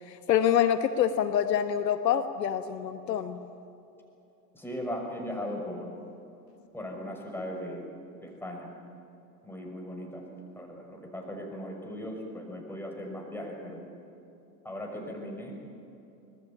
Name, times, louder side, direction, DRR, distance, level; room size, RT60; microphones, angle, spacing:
voice 1, 0.1-3.4, left 9 dB, 75° left, 10 dB, 1.3 m, -26 dB
voice 2, 4.5-5.9 6.7-7.9 8.2-8.7 9.4-10.3 10.5-13.8 14.6-15.5, equal, 5° left, 1 dB, 6.3 m, -38 dB
25.5 x 20.0 x 9.0 m, 2.8 s
hypercardioid pair, 90°, 50 cm